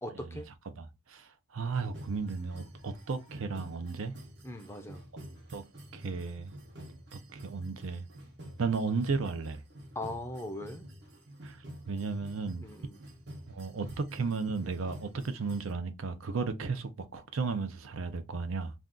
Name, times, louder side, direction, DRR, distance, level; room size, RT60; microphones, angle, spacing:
voice 1, 0.0-0.5 4.4-5.0 10.0-10.8 12.6-13.0, left 1 dB, 10° left, 0.4 m, -39 dB
voice 2, 0.7-4.1 5.5-5.6 5.9-6.5 7.1-8.0 8.6-9.6 11.4-11.6 11.9-12.6 13.5-18.7, right 4 dB, 80° right, 0.6 m, -34 dB
sound 1, 1.7-15.7, right 1 dB, 50° right, 0.9 m, -50 dB
2.6 x 2.3 x 3.5 m
head